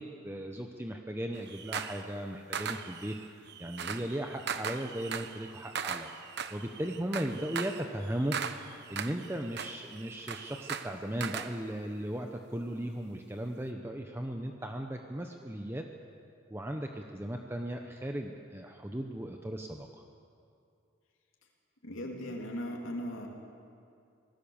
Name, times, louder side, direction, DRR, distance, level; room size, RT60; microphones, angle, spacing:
voice 1, 0.0-3.1 3.6-6.1 6.5-8.3 8.8-15.8 16.5-19.9, right 1 dB, 10° right, 3 dB, 0.9 m, -37 dB
sound 1, 1.3-2.1 2.5-11.5, right 7 dB, 55° right, 1.0 m, -39 dB
voice 2, 21.8-23.3, equal, 80° left, 0 dB, 3.0 m, -38 dB
25.5 x 18.5 x 7.2 m, 2.5 s
head